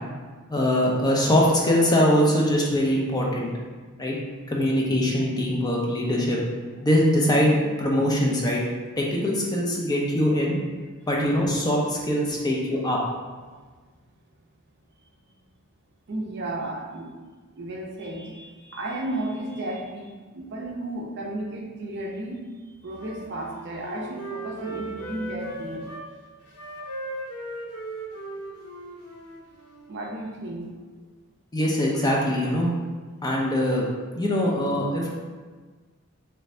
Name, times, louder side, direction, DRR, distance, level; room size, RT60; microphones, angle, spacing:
voice 1, 0.5-3.5 4.0-4.2 4.5-6.4 6.8-8.6 9.0-10.6 11.1-13.0 31.5-32.7 33.2-33.9 34.2-35.1, equal, 20° left, -3 dB, 0.5 m, -22 dB
voice 2, 16.1-17.1 17.6-22.4 22.8-26.0 29.9-30.7, right 1 dB, 50° right, 0 dB, 0.5 m, -33 dB
Wind instrument woodwind instrument, 22.9-26.1 26.5-29.9, right 1 dB, 90° left, 0.7 m, -37 dB
3.2 x 2.6 x 3.2 m, 1.4 s
head